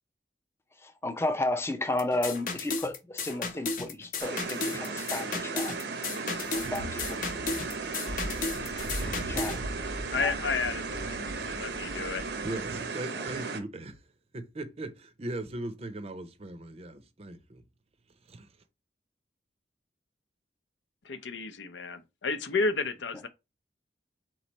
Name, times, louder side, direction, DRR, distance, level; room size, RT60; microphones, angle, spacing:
voice 1, 0.7-5.8 6.5-7.4 8.8-9.6 10.2-10.3 13.1-13.3, left 2 dB, 15° left, 0.5 m, -33 dB
sound 1, 2.0-9.6, left 4 dB, 50° left, 0.7 m, -34 dB
sound 2, 4.2-13.6, right 4 dB, 70° right, 0.7 m, -36 dB
sound 3, 6.4-12.8, right 1 dB, 85° right, 1.0 m, -40 dB
voice 2, 10.1-12.2 21.0-23.3, left 4 dB, 85° left, 0.6 m, -32 dB
voice 3, 12.4-14.0 14.3-17.6 18.3-18.5, right 1 dB, 35° right, 0.6 m, -39 dB
4.0 x 3.1 x 4.1 m
head